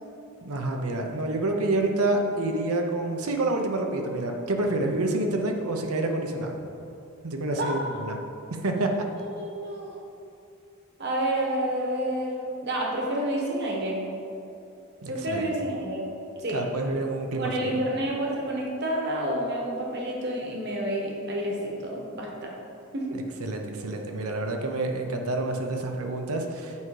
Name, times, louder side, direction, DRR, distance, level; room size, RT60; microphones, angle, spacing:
voice 1, 0.4-6.5 7.2-8.2 8.5-9.1 15.0-15.5 16.5-17.8 23.1-26.8, right 2 dB, 90° right, 3 dB, 0.8 m, -28 dB
voice 2, 8.7-9.9 11.0-14.0 15.1-16.1 16.4-16.6 17.4-22.5 22.9-23.1, right 1 dB, 50° right, -1 dB, 1.2 m, -29 dB
8.3 x 4.8 x 4.8 m, 2.7 s
head